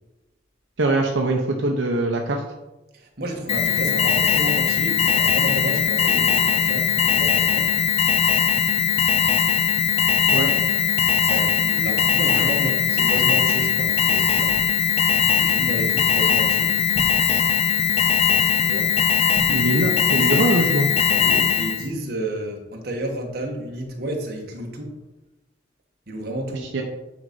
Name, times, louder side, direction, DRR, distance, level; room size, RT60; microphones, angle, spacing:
voice 1, 0.8-2.4 10.3-10.5 19.5-20.9 26.7-26.8, right 2 dB, 80° right, 2 dB, 0.8 m, -22 dB
voice 2, 2.9-7.7 10.3-10.7 11.2-14.6 15.4-16.8 18.6-18.9 21.1-25.0 26.1-26.7, right 1 dB, 55° right, 1 dB, 1.6 m, -31 dB
Alarm, 3.5-21.9, left 7 dB, 35° left, 0.5 m, -20 dB
sound 1, 10.4-13.1 13.4-13.7 14.3-14.8 16.8-17.3 19.2-19.7, equal, 55° left, 1.7 m, -39 dB
9.4 x 4.0 x 5.3 m, 1.1 s
head